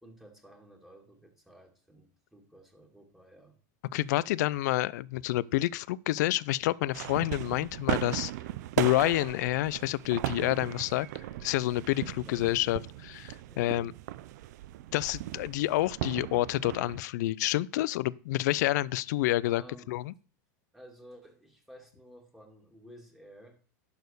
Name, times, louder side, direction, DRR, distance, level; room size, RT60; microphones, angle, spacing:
voice 1, 0.0-3.6 11.9-12.5 13.4-13.8 19.4-20.0 20.7-23.6, equal, 5° right, 2.5 m, -54 dB
voice 2, 3.9-8.3 8.8-11.1 11.4-13.9 14.9-19.6 19.9-20.1, left 16 dB, 70° left, 0.5 m, -28 dB
sound 1, 6.9-17.0, right 15 dB, 70° right, 0.5 m, -37 dB
11.5 x 4.3 x 6.7 m
hypercardioid pair, 110°, 10 cm